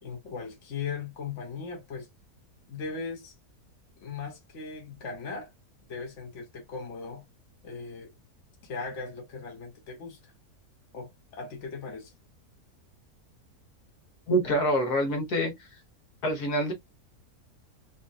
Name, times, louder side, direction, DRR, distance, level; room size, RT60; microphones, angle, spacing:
voice 1, 0.0-2.1 2.7-3.3 4.0-5.5 5.9-7.2 7.6-8.1 8.6-10.3 10.9-12.1, left 5 dB, 55° left, 1.4 m, -38 dB
voice 2, 14.3-15.5 16.2-16.7, right 1 dB, 85° left, 2.0 m, -25 dB
4.1 x 2.9 x 2.4 m
omnidirectional pair, 1.6 m